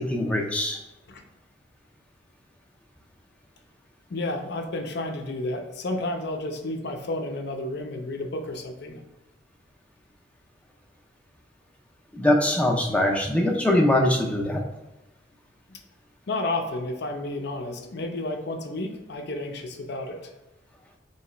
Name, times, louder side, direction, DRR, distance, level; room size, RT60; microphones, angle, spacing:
voice 1, 0.1-0.8 12.1-14.6, left 1 dB, 5° left, 0 dB, 0.5 m, -22 dB
voice 2, 4.1-9.0 15.7-15.8 16.3-20.3, left 2 dB, 55° left, 4 dB, 0.5 m, -31 dB
3.1 x 2.9 x 4.3 m, 0.99 s
head